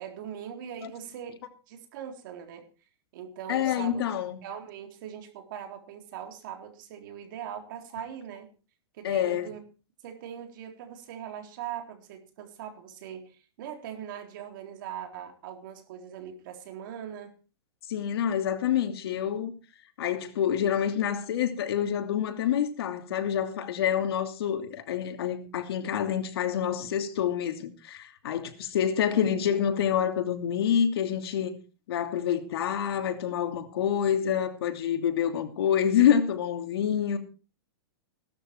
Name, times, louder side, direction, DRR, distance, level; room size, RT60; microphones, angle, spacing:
voice 1, 0.0-1.4 1.7-2.7 3.1-4.0 4.4-8.5 8.9-9.6 10.0-17.3 29.2-29.4, right 9 dB, 50° right, 3.8 m, -41 dB
voice 2, 3.5-4.4 9.0-9.5 17.9-19.5 20.0-31.5 31.9-37.2, left 9 dB, 65° left, 2.8 m, -27 dB
17.0 x 12.5 x 4.5 m
supercardioid pair, 160°, 14 cm